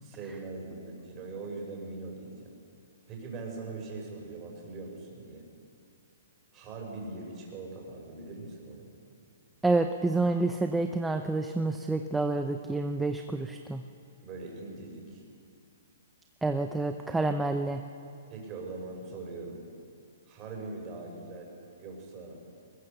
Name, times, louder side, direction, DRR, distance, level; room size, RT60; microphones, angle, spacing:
voice 1, 0.0-2.5 3.1-5.4 6.5-8.9 14.2-15.2 18.3-19.6 20.3-21.5 21.8-22.4, right 3 dB, 25° right, -1 dB, 6.0 m, -41 dB
voice 2, 9.6-13.8 16.4-17.8, right 2 dB, 5° right, 6 dB, 0.7 m, -28 dB
21.5 x 21.5 x 6.8 m, 2.5 s
hypercardioid pair, 150°, 0 cm